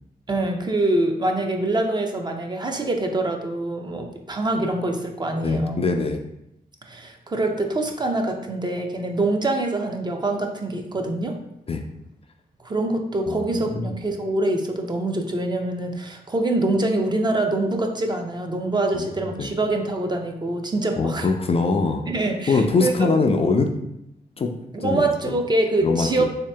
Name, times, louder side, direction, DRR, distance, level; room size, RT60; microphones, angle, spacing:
voice 1, 0.3-5.8 6.9-11.4 12.6-21.3 22.1-23.1 24.7-26.2, right 2 dB, 25° right, 3 dB, 0.5 m, -24 dB
voice 2, 5.4-6.2 11.7-11.8 13.3-13.9 18.9-19.1 19.4-19.5 21.0-22.0 22.5-23.7 24.4-24.5 24.8-25.4 25.8-26.2, left 4 dB, 35° left, 4 dB, 0.4 m, -23 dB
3.2 x 2.8 x 3.3 m, 0.82 s
cardioid pair, 70°, 16 cm